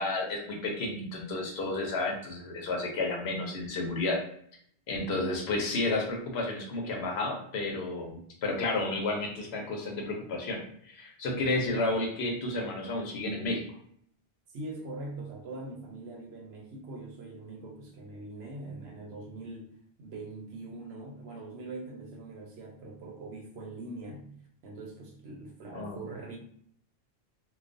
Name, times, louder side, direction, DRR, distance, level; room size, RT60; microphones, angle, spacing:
voice 1, 0.0-4.2 4.9-13.6 25.7-26.0, left 2 dB, 85° left, 1 dB, 0.9 m, -31 dB
voice 2, 14.5-24.3 24.6-26.4, right 2 dB, 90° right, 0 dB, 0.9 m, -42 dB
2.3 x 2.3 x 2.5 m, 0.65 s
omnidirectional pair, 1.0 m